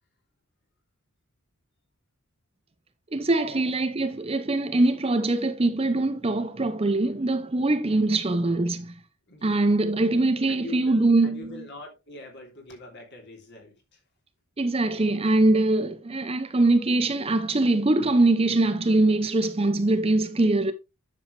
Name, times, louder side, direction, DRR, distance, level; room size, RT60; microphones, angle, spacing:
voice 1, 3.1-9.0 9.4-11.5 14.6-20.7, right 2 dB, 25° right, 0.7 m, -23 dB
voice 2, 10.5-14.0, left 2 dB, 50° left, 3.3 m, -43 dB
10.0 x 7.0 x 3.3 m
head